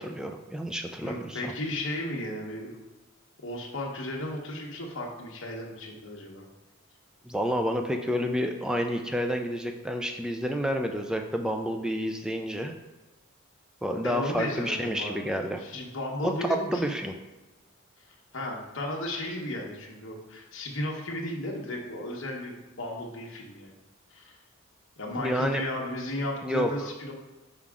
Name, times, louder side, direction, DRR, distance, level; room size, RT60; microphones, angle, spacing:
voice 1, 0.0-1.5 7.2-12.7 13.8-15.6 16.2-17.1 25.2-25.6 26.4-26.7, equal, 5° right, 4 dB, 0.4 m, -29 dB
voice 2, 1.0-2.8 3.4-6.5 9.1-9.2 14.0-15.2 15.6-16.9 18.3-23.8 24.1-24.4 25.0-27.1, left 1 dB, 60° left, -1 dB, 1.2 m, -34 dB
5.8 x 4.8 x 3.6 m, 1.2 s
head